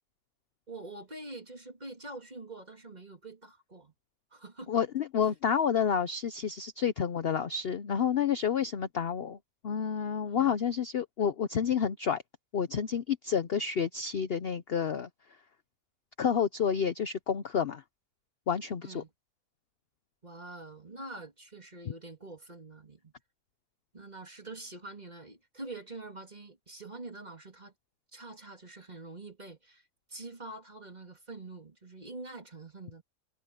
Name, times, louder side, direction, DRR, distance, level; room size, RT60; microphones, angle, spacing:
voice 1, 0.7-3.9 4.3-4.8 10.3-10.6 18.8-19.1 20.2-23.1 23.9-27.7 28.1-29.8 30.1-33.0, right 2 dB, 25° right, 3.0 m, -45 dB
voice 2, 4.7-9.4 9.6-12.2 12.5-15.1 16.2-17.8 18.5-19.0, left 7 dB, 50° left, 0.7 m, -29 dB
omnidirectional pair, 1.7 m